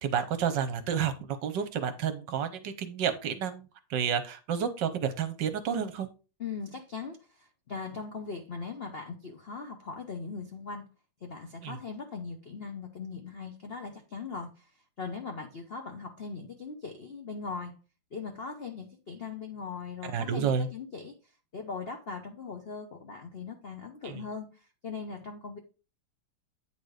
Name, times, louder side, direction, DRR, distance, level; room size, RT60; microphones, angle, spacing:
voice 1, 0.0-6.1 11.6-11.8 20.0-20.7 24.0-24.2, right 7 dB, 65° right, 1.3 m, -30 dB
voice 2, 6.4-10.9 11.2-14.7 15.0-17.7 18.1-21.2 21.5-25.6, left 5 dB, 60° left, 0.6 m, -40 dB
9.3 x 4.2 x 4.9 m
omnidirectional pair, 2.4 m